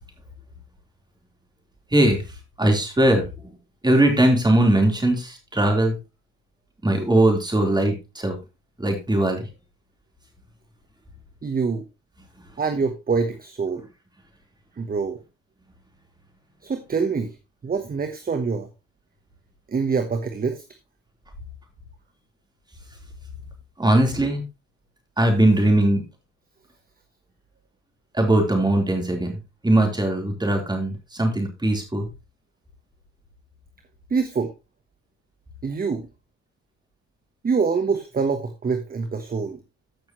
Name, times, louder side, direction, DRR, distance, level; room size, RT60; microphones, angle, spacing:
voice 1, 1.9-2.2 2.6-3.2 3.8-6.0 6.8-8.3 8.8-9.5 23.8-24.4 25.2-26.0 28.1-32.1, right 1 dB, 15° right, 2 dB, 3.9 m, -20 dB
voice 2, 11.4-11.8 12.6-13.8 14.8-15.2 16.6-17.3 17.6-18.7 19.7-20.6 34.1-34.5 35.6-36.1 37.4-39.6, right 5 dB, 30° right, 8 dB, 1.1 m, -25 dB
14.5 x 6.1 x 3.1 m, 0.27 s
cardioid pair, 90°, 30 cm